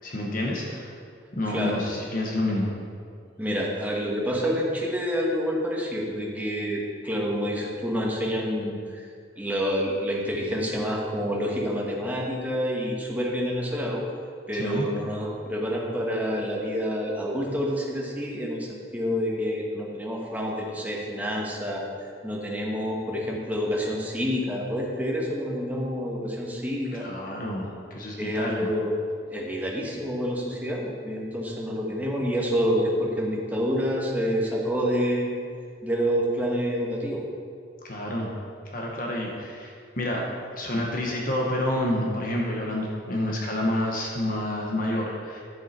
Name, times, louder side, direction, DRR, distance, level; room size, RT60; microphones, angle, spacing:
voice 1, 0.0-0.9 1.3-2.7 14.5-14.9 27.0-28.7 37.8-38.3 38.6-40.3 40.5-45.4, left 1 dB, 45° left, -1 dB, 1.2 m, -29 dB
voice 2, 1.5-1.8 3.4-9.1 9.4-14.0 14.5-21.8 22.2-27.1 28.2-29.0 29.3-35.3 35.8-37.2, equal, 10° right, -2 dB, 1.3 m, -28 dB
10.5 x 7.2 x 4.4 m, 2.2 s
head